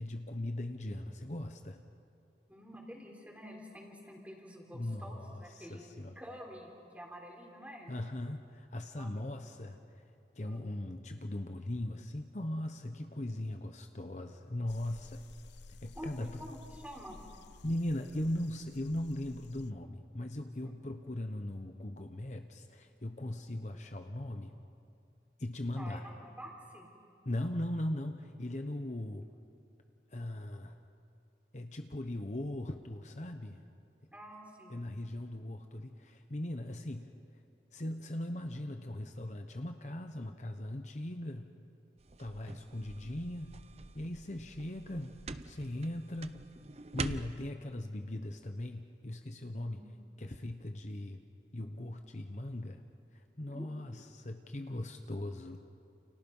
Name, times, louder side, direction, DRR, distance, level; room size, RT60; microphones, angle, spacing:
voice 1, 0.0-1.8 4.7-6.1 7.9-9.8 10.3-15.2 15.8-16.4 17.6-24.5 25.4-26.1 27.3-29.2 30.1-30.8 31.5-33.6 34.7-37.1 37.7-41.5 42.2-43.6 43.9-46.4 46.9-49.8 50.2-51.2 51.5-52.8 53.1-55.6, left 1 dB, 40° left, 6 dB, 1.0 m, -39 dB
voice 2, 2.5-5.8 6.2-7.9 8.9-9.5 10.4-10.7 15.9-17.2 25.8-26.9 34.1-34.8 49.7-49.8 53.5-53.7, equal, 10° right, 0 dB, 4.0 m, -48 dB
sound 1, 14.7-19.7, left 3 dB, 80° left, 0.7 m, -54 dB
sound 2, 42.0-47.5, right 3 dB, 35° right, 0.7 m, -45 dB
30.0 x 29.5 x 5.5 m, 2.5 s
head